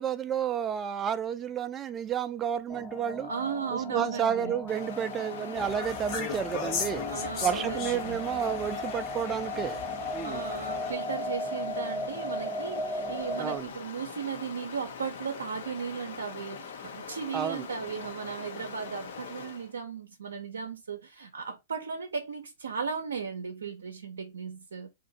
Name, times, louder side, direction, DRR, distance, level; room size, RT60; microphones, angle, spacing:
voice 1, 0.0-3.3 3.7-7.1 7.4-9.8 10.1-10.4 13.4-13.7 17.3-17.6, right 8 dB, 25° right, 0.4 m, -31 dB
sound 1, 2.7-13.6, left 2 dB, 15° left, 0.7 m, -37 dB
voice 2, 3.2-4.5 7.1-8.2 10.2-24.9, right 6 dB, 85° right, 0.6 m, -36 dB
Stream, 4.7-19.7, left 6 dB, 65° left, 0.8 m, -43 dB
sound 2, 5.5-10.9, left 5 dB, 40° left, 1.2 m, -37 dB
2.6 x 2.5 x 4.0 m
hypercardioid pair, 115°, 0 cm